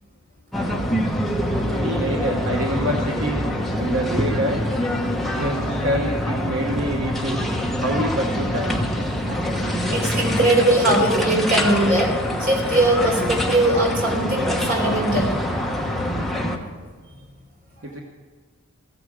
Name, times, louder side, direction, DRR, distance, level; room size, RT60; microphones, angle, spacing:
sound 1, 0.5-16.6, equal, ahead, 1.1 m, -25 dB
voice 1, 1.8-3.5 3.8-4.6 5.3-7.5 7.8-8.8 17.8-18.0, right 1 dB, 65° right, 1 dB, 1.1 m, -26 dB
voice 2, 9.9-12.1 12.4-15.3, right 1 dB, 40° right, 0 dB, 3.7 m, -20 dB
15.0 x 9.8 x 6.2 m, 1.5 s
head